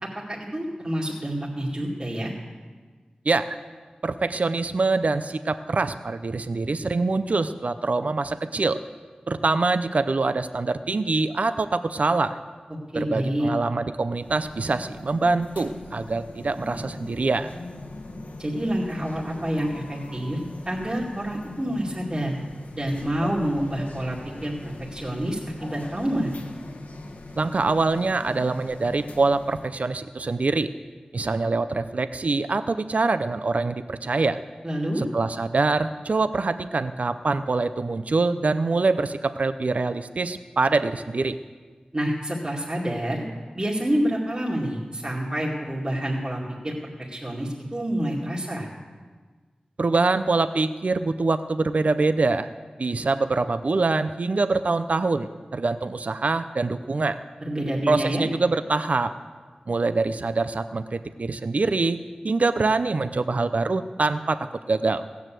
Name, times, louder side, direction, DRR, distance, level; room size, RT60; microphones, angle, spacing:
voice 1, 0.0-2.3 12.9-13.5 18.4-20.4 20.7-22.4 22.7-26.3 34.6-35.0 41.9-43.2 43.5-46.7 47.1-48.7 57.4-58.2, right 1 dB, 30° right, -5 dB, 2.4 m, -28 dB
voice 2, 3.3-3.6 4.0-8.8 9.3-12.4 12.9-17.5 27.4-30.7 31.1-34.4 35.0-41.4 49.8-52.5 52.8-57.2 57.9-59.1 59.7-65.0, right 3 dB, 65° right, 11 dB, 0.6 m, -24 dB
sound 1, 14.1-29.7, left 2 dB, 80° left, 1.5 m, -40 dB
16.5 x 9.4 x 7.6 m, 1.4 s
wide cardioid pair, 80°, 3 cm